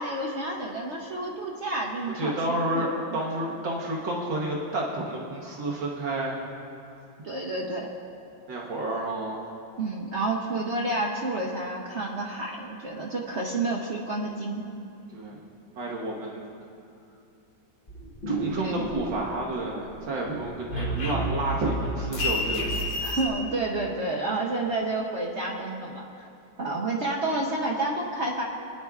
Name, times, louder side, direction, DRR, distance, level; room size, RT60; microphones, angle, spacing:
voice 1, 0.0-2.4 2.7-3.2 7.2-7.9 9.8-14.6 18.5-18.9 23.0-26.3 26.6-28.4, right 2 dB, 55° right, -2 dB, 0.8 m, -30 dB
voice 2, 2.1-2.9 3.1-6.4 8.5-9.5 15.1-15.4 15.7-16.4 18.3-22.8 26.7-26.8, right 1 dB, 75° right, -3 dB, 1.8 m, -30 dB
sound 1, 17.9-19.6 19.9-23.3, equal, 35° left, 1.1 m, -30 dB
20.0 x 10.0 x 2.4 m, 2.7 s
omnidirectional pair, 2.0 m